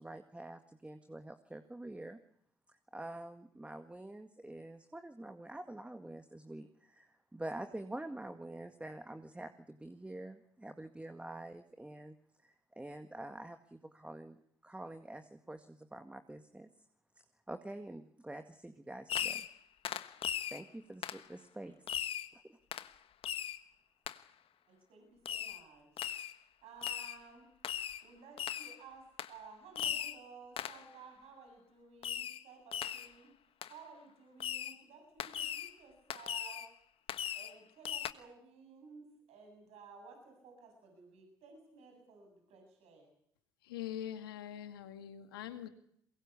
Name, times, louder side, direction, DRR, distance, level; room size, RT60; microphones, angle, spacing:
voice 1, 0.0-2.2 2.9-12.2 12.4-14.4 14.6-16.7 17.5-19.5 20.5-21.8 22.3-22.6, right 1 dB, 10° right, 1.9 m, -47 dB
Fireworks, 19.1-19.6 19.8-20.6 21.0-21.2 21.9-22.3 22.7-22.9 23.2-23.6 24.1-24.2 25.3-25.6 26.0-26.3 26.8-27.2 27.6-28.0 28.4-28.8 29.2-29.3 29.8-30.2 30.6-30.8 32.0-32.4 32.7-33.1 33.6-33.7 34.4-34.8 35.2-35.7 36.1-36.7 37.1-37.5 37.8-38.1, left 10 dB, 55° left, 1.3 m, -38 dB
voice 2, 24.7-25.9 26.6-27.5 28.0-33.3 33.7-36.7 37.3-43.1, right 5 dB, 65° right, 7.9 m, -55 dB
voice 3, 43.6-45.7, left 11 dB, 85° left, 2.1 m, -43 dB
22.5 x 21.0 x 8.4 m
hypercardioid pair, 55°, 12 cm